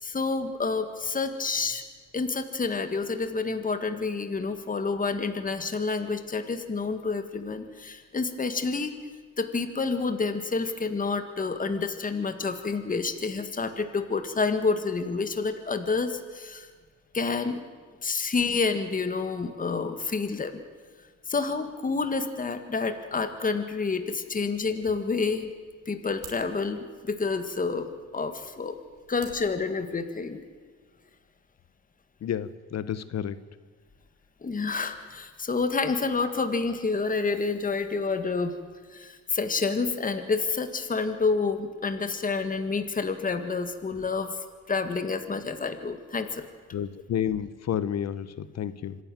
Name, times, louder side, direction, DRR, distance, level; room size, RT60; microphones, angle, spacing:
voice 1, 0.0-1.8 2.1-9.0 9.4-16.7 17.1-17.6 18.0-20.6 21.3-25.5 25.9-28.8 29.1-30.4 34.4-38.6 38.9-44.4 44.7-46.4, left 4 dB, 25° left, 8 dB, 1.8 m, -29 dB
sound 1, 25.4-30.4, right 7 dB, 85° right, 3.5 m, -53 dB
voice 2, 32.2-33.4 46.7-49.0, left 9 dB, 60° left, 15 dB, 1.0 m, -30 dB
25.5 x 11.5 x 9.2 m, 1.5 s
cardioid pair, 90°, 30 cm